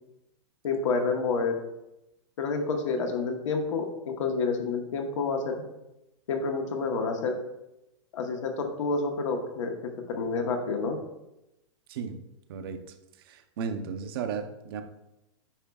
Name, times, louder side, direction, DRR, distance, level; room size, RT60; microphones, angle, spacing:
voice 1, 0.6-1.6 2.4-5.6 6.3-7.4 8.1-9.8 10.1-11.0, left 4 dB, 75° left, 3 dB, 1.1 m, -29 dB
voice 2, 12.5-12.8 13.3-14.8, right 6 dB, 50° right, 7 dB, 0.7 m, -34 dB
8.9 x 5.1 x 2.3 m, 0.92 s
supercardioid pair, 175°, 16 cm